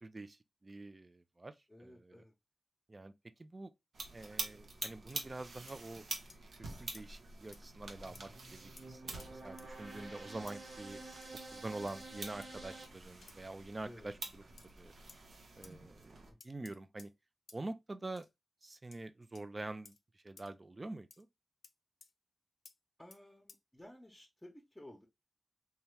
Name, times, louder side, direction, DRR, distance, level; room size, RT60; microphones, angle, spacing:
voice 1, 0.0-1.5 1.8-2.2 2.9-3.1 3.4-3.7 4.1-6.0 6.8-11.0 11.5-14.9 15.5-16.2 16.4-17.1 17.5-18.3 18.6-21.3, right 2 dB, 35° right, 0.4 m, -46 dB
voice 2, 1.7-2.3 8.1-8.4 13.8-14.1 23.0-25.0, left 1 dB, 10° left, 0.8 m, -55 dB
sound 1, 3.9-16.3, right 3 dB, 80° right, 0.7 m, -47 dB
sound 2, 5.1-5.2 5.7-5.8 6.3-6.4 6.9-7.1 7.5-7.6 8.1-8.3 8.8-8.9 9.2-9.7 10.5-10.6 11.2-11.4 11.9-12.0 12.4-12.6 13.2-13.4 14.6-14.7 15.1-15.2 15.6-15.8 16.4-17.1 17.5-17.6 18.2-18.3 18.9-19.0 19.3-19.5 19.8-20.0 20.4-20.5 21.1-21.2 21.6-21.7 22.0-22.1 22.7-22.8 23.1-23.2 23.5-23.6, left 4 dB, 75° left, 0.4 m, -58 dB
sound 3, 8.0-12.9, right 2 dB, 60° right, 1.2 m, -50 dB
2.8 x 2.3 x 3.2 m
cardioid pair, 50°, 0 cm